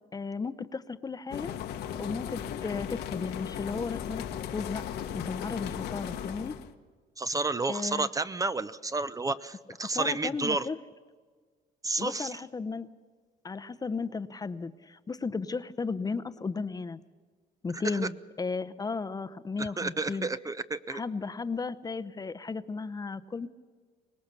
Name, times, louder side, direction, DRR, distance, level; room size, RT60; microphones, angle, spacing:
voice 1, 0.1-1.6 2.0-4.8 5.1-6.6 7.7-8.1 9.9-10.8 12.0-12.9 13.4-17.0 17.6-20.3 20.9-23.5, left 4 dB, 20° left, 13 dB, 0.8 m, -35 dB
sound 1, 1.3-6.7, left 9 dB, 75° left, 1.3 m, -37 dB
voice 2, 7.2-10.7 11.8-12.4 17.7-18.1 19.6-21.0, right 3 dB, 20° right, 13 dB, 0.7 m, -31 dB
24.5 x 19.0 x 6.8 m, 1.5 s
cardioid pair, 110°, 17 cm